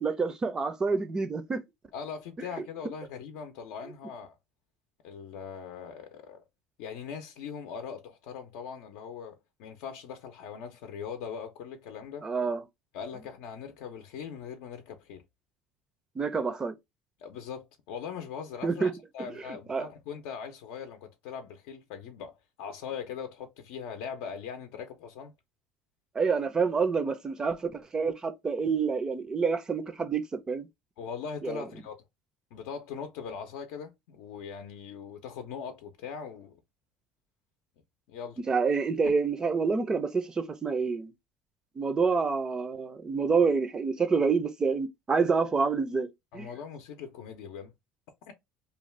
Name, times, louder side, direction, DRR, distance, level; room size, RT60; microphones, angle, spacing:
voice 1, 0.0-1.6 12.2-12.6 16.2-16.7 18.6-18.9 19.7-19.9 26.1-30.7 31.4-31.6 38.5-41.1 41.8-46.5, right 5 dB, 20° right, 0.4 m, -27 dB
voice 2, 1.9-4.4 5.0-6.4 6.8-12.3 12.9-15.2 17.2-25.3 31.0-32.0 32.5-36.6 38.1-38.4 46.3-47.7 48.3-48.4, left 7 dB, 75° left, 0.5 m, -40 dB
2.5 x 2.3 x 3.1 m
cardioid pair, 130°, 3 cm